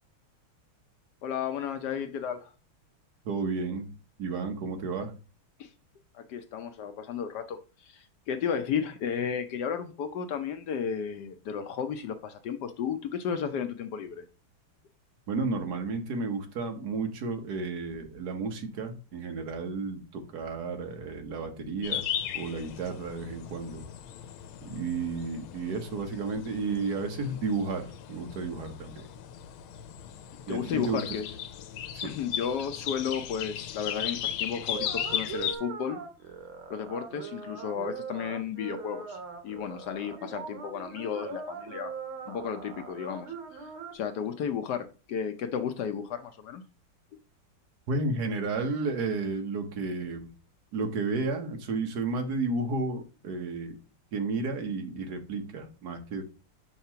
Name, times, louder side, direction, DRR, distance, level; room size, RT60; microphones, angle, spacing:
voice 1, 1.2-2.5 5.6-5.7 6.1-14.2 30.5-31.3 32.0-36.0 36.7-39.2 39.4-41.9 42.3-46.6, left 7 dB, 70° left, 7 dB, 1.0 m, -33 dB
voice 2, 3.2-3.9 4.2-5.1 15.3-22.0 22.3-23.8 24.6-29.1 30.5-31.0 31.9-32.1 47.9-50.3 50.7-53.8 54.1-56.2, right 3 dB, 55° right, 5 dB, 1.4 m, -32 dB
sound 1, 21.8-35.6, left 10 dB, 90° left, 1.5 m, -37 dB
sound 2, 34.7-43.9, right 5 dB, 80° right, 1.9 m, -41 dB
5.7 x 3.0 x 5.5 m, 0.33 s
omnidirectional pair, 2.3 m